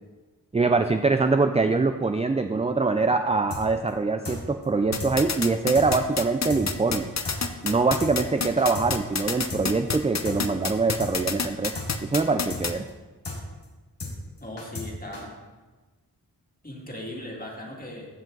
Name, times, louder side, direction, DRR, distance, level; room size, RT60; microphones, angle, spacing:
voice 1, 0.5-7.1 7.6-11.8 12.0-12.8, right 3 dB, 15° right, 7 dB, 0.4 m, -24 dB
sound 1, 3.5-3.6 3.9-4.0 4.2-4.4 4.6-4.7 5.0-5.1 5.4-5.5 5.7-5.9 6.1-6.2 6.5-6.6 6.9-7.0 7.2-7.4 7.6-7.7 8.0-8.1 8.4-8.9 9.1-9.2 9.5-9.6 9.9-10.0 10.2-10.4 10.6-10.7 11.0-11.1 11.4-11.5 11.7-11.9 12.1-12.2 12.5-12.6 12.9-13.0 13.2-13.4 13.6-13.7 14.0-14.1 14.4-14.9 15.1-15.2, left 3 dB, 85° left, 2.1 m, -34 dB
sound 2, 4.9-12.7, left 5 dB, 40° left, 0.7 m, -27 dB
voice 2, 14.4-15.3 16.6-18.1, left 1 dB, 20° left, -2 dB, 2.2 m, -38 dB
15.0 x 5.1 x 3.9 m, 1.3 s
wide cardioid pair, 65°, 40 cm